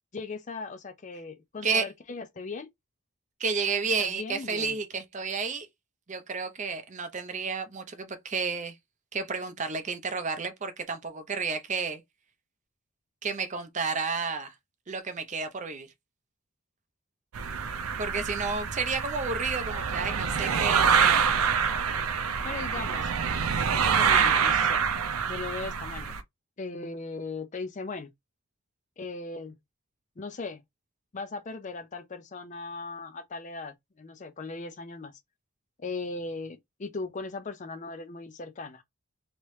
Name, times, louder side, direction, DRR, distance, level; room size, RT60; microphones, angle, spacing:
voice 1, 0.1-2.7 4.0-4.8 22.4-23.1 23.8-24.9 25.3-26.2 26.6-28.1 29.0-29.5 30.2-30.6 31.1-35.1 35.8-38.8, left 3 dB, 35° left, 0.5 m, -38 dB
voice 2, 3.4-5.7 6.1-8.7 9.1-12.0 13.2-14.5 14.9-15.9 18.0-21.3, right 4 dB, 35° right, 0.6 m, -31 dB
sound 1, 17.3-26.2, right 6 dB, 85° right, 0.5 m, -26 dB
3.0 x 2.9 x 3.1 m
head